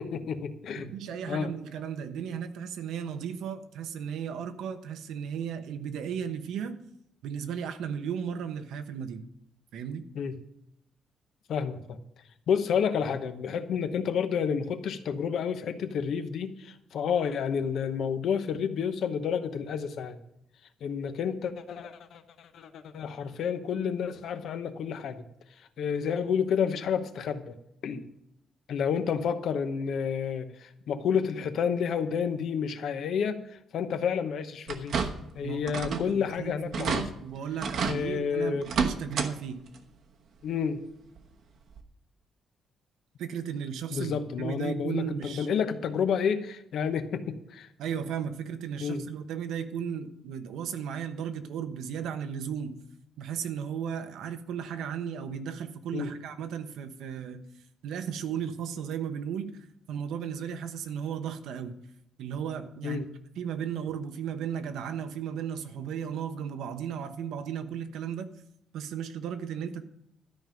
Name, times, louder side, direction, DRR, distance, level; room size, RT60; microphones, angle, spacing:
voice 1, 0.0-0.9 1.3-1.5 10.2-10.3 11.5-12.0 12.5-20.2 20.8-25.2 25.8-27.6 27.8-28.0 28.7-35.1 35.3-37.0 37.8-38.7 40.4-40.8 43.9-47.7 48.8-49.0 55.9-56.1 62.8-63.1, left 7 dB, 60° left, 9 dB, 1.0 m, -30 dB
voice 2, 0.8-6.8 7.2-9.2 9.7-10.1 35.4-39.6 43.2-45.5 47.8-52.8 53.2-57.5 57.8-59.6 59.9-61.7 62.2-63.0 63.4-68.3 68.7-69.8, right 8 dB, 90° right, 8 dB, 1.0 m, -35 dB
sound 1, 34.7-35.4 35.7-36.1 36.4-36.5 36.7-37.0 37.6-38.0 38.6-39.3 39.7-39.8 41.2-41.3 41.8-41.9, right 5 dB, 55° right, 1.1 m, -30 dB
13.0 x 5.4 x 9.0 m, 0.78 s
cardioid pair, 165°, 0 cm